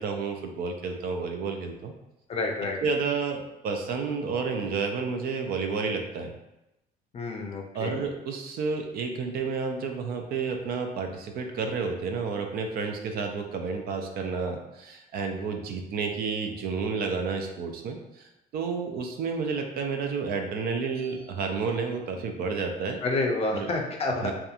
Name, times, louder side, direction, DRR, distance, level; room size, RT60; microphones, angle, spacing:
voice 1, 0.0-1.9 2.8-6.3 7.7-23.0 23.5-23.7 24.2-24.3, right 5 dB, 65° right, 4 dB, 0.4 m, -30 dB
voice 2, 2.3-2.8 7.1-8.0 23.0-24.3, left 2 dB, 35° left, 1 dB, 0.5 m, -29 dB
2.8 x 2.3 x 2.4 m, 0.91 s
cardioid pair, 110°, 17 cm